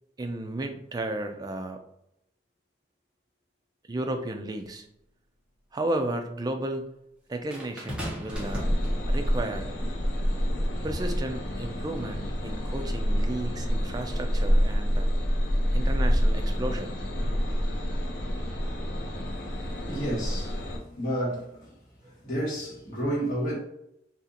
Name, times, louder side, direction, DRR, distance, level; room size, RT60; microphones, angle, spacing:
voice 1, 0.2-1.8 3.9-4.9 5.7-6.9 7.3-8.7 9.1-9.7 10.8-15.1 15.7-17.0, right 1 dB, 20° right, 0.3 m, -33 dB
sound 1, 4.6-4.7 7.5-9.4 10.3-10.5, equal, 5° right, 0.8 m, -37 dB
sound 2, 8.3-20.8, equal, 70° left, 0.7 m, -27 dB
voice 2, 19.8-21.7 22.0-23.5, right 1 dB, 45° left, 1.3 m, -31 dB
2.7 x 2.5 x 3.8 m
head